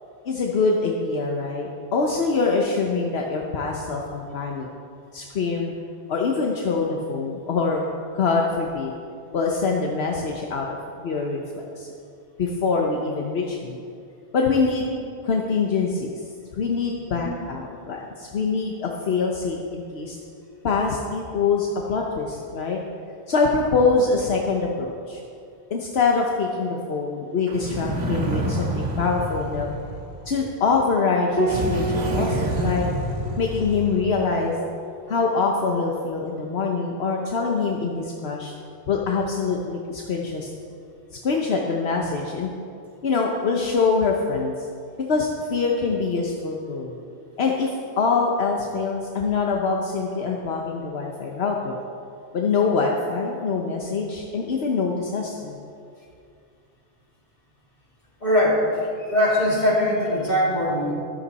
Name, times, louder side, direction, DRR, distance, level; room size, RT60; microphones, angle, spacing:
voice 1, 0.3-4.7 5.1-5.7 6.1-7.8 8.1-8.9 9.3-10.7 11.0-11.9 12.4-13.8 14.3-14.8 15.2-16.2 16.5-20.2 20.6-22.8 23.3-25.2 25.7-29.7 30.3-32.9 33.4-34.6 35.1-38.5 38.9-40.5 41.2-42.5 43.0-44.7 45.0-47.0 47.4-51.8 52.3-55.6, left 4 dB, 75° left, 0 dB, 1.2 m, -24 dB
sound 1, 27.5-30.5 31.5-34.2, right 1 dB, 80° right, 1.8 m, -28 dB
Piano, 31.4-36.2 37.9-38.7, right 2 dB, 10° left, 1.8 m, -32 dB
voice 2, 58.2-58.6 59.0-60.9, left 1 dB, 45° left, -7 dB, 3.6 m, -21 dB
13.5 x 13.0 x 4.1 m, 2.4 s
omnidirectional pair, 1.1 m